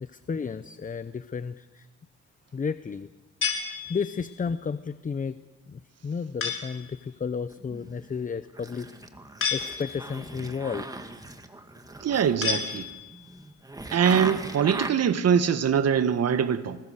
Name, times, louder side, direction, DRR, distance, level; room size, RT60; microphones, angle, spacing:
voice 1, 0.0-1.9 2.5-3.1 3.9-5.4 5.7-8.9 9.5-10.9, left 5 dB, 25° left, 0.8 m, -32 dB
sound 1, 3.4-4.4 6.4-6.9 9.4-10.2 12.4-13.3, left 6 dB, 45° left, 4.4 m, -31 dB
sound 2, 7.5-8.2 8.5-14.9, right 2 dB, 10° right, 2.0 m, -39 dB
voice 2, 12.0-12.9 13.9-16.8, right 7 dB, 55° right, 1.6 m, -23 dB
26.0 x 20.5 x 6.6 m
cardioid pair, 90°, 30 cm